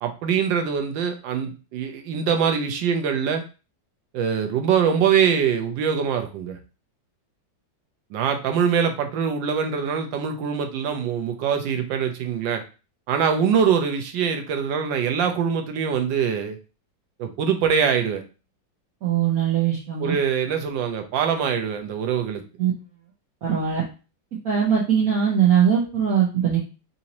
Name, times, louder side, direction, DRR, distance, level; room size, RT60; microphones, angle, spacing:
voice 1, 0.0-3.4 4.1-6.6 8.1-12.6 13.1-16.6 17.2-18.2 20.0-22.4, right 7 dB, 80° right, 6 dB, 1.3 m, -23 dB
voice 2, 19.0-20.1 22.6-22.7 23.4-23.8 24.4-26.6, right 8 dB, 60° right, -4 dB, 1.0 m, -21 dB
4.0 x 2.7 x 2.9 m, 0.33 s
omnidirectional pair, 2.1 m